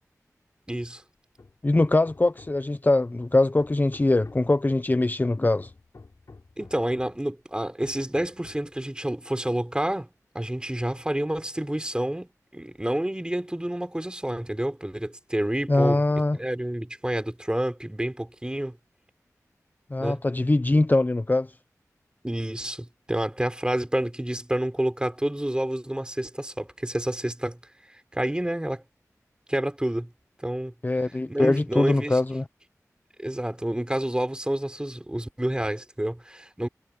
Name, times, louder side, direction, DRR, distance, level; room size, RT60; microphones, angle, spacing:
voice 1, 0.7-1.0 6.6-16.0 16.3-18.8 20.0-20.2 22.2-28.8 29.5-30.1 30.4-30.7 31.3-32.2 33.2-36.7, right 1 dB, 15° right, 3.7 m, -29 dB
Hammer, 1.4-2.8 3.2-4.6 5.2-7.3 7.8-8.8, left 3 dB, 65° left, 5.6 m, -50 dB
voice 2, 1.6-5.7 15.7-16.4 19.9-21.5 30.8-32.4, left 2 dB, 30° left, 0.7 m, -22 dB
wide cardioid pair, 50°, 6 cm